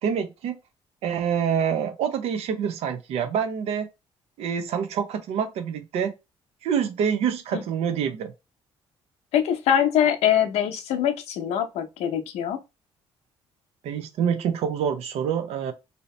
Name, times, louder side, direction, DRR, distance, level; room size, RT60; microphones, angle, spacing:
voice 1, 0.0-0.5 1.0-3.9 4.4-6.1 6.6-8.3 13.8-15.7, right 7 dB, 75° right, 0.6 m, -26 dB
voice 2, 9.3-12.6, left 9 dB, 80° left, 0.6 m, -23 dB
2.8 x 2.8 x 3.1 m
cardioid pair, 140°, 11 cm